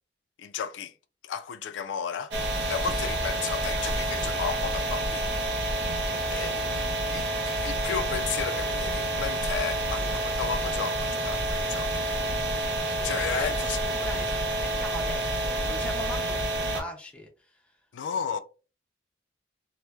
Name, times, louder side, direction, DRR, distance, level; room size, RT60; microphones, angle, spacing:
voice 1, 0.4-0.9 1.2-2.3 2.7-5.5 6.3-6.6 7.1-12.1 13.0-13.8 17.9-18.4, left 7 dB, 85° left, 0.3 m, -33 dB
sound 1, 2.3-16.8, right 1 dB, 75° right, 0.6 m, -28 dB
voice 2, 6.3-6.7 13.0-17.6, equal, 5° left, 0.5 m, -41 dB
3.0 x 2.0 x 2.2 m
head